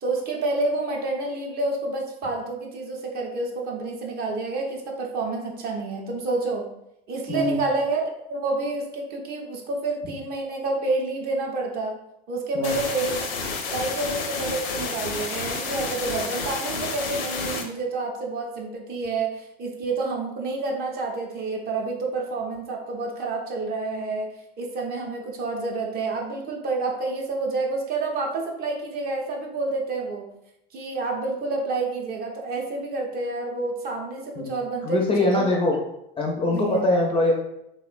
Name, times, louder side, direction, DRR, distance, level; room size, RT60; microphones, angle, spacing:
voice 1, 0.0-6.7 7.1-12.0 12.3-13.3 13.7-24.3 24.6-30.3 30.7-35.0 35.3-35.5 36.5-36.8, right 3 dB, 35° right, 1 dB, 0.5 m, -29 dB
voice 2, 7.3-7.6 12.5-12.7 34.4-34.5 34.8-35.7 36.2-37.3, left 2 dB, 20° left, 0 dB, 0.4 m, -22 dB
sound 1, 12.6-17.6, left 4 dB, 70° left, 0.6 m, -30 dB
2.9 x 2.0 x 2.4 m, 0.81 s
hypercardioid pair, 90°, 29 cm